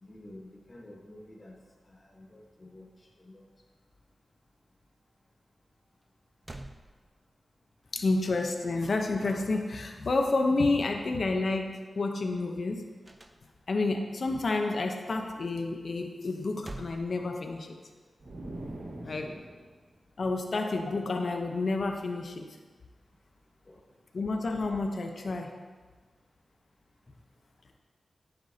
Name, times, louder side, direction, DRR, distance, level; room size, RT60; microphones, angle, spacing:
voice 1, 0.0-1.6 1.9-2.9 3.2-3.4 19.0-19.4 23.6-23.8, left 1 dB, 35° left, -1 dB, 1.2 m, -50 dB
sound 1, 6.0-6.1 6.4-7.6 13.0-13.9 16.3-17.9, right 2 dB, 25° right, 0.6 m, -47 dB
voice 2, 7.9-12.8 13.7-17.8 19.0-19.3 20.2-22.5 24.1-25.5, left 3 dB, 65° left, 3 dB, 0.8 m, -29 dB
sound 2, 18.2-19.8, right 1 dB, 75° right, 1.7 m, -42 dB
10.5 x 7.9 x 2.8 m, 1.4 s
cardioid pair, 65°, 0 cm